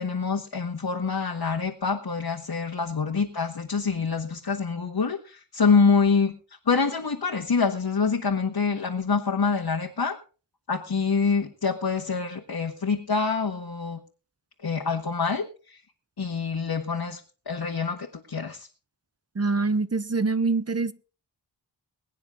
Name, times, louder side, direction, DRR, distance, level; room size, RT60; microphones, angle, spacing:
voice 1, 0.0-6.3 6.6-10.2 10.7-14.0 14.6-15.8 16.2-18.7, left 5 dB, 55° left, 1.5 m, -26 dB
voice 2, 19.4-20.9, right 3 dB, 35° right, 0.8 m, -24 dB
22.0 x 9.3 x 3.5 m
wide cardioid pair, 70°, 45 cm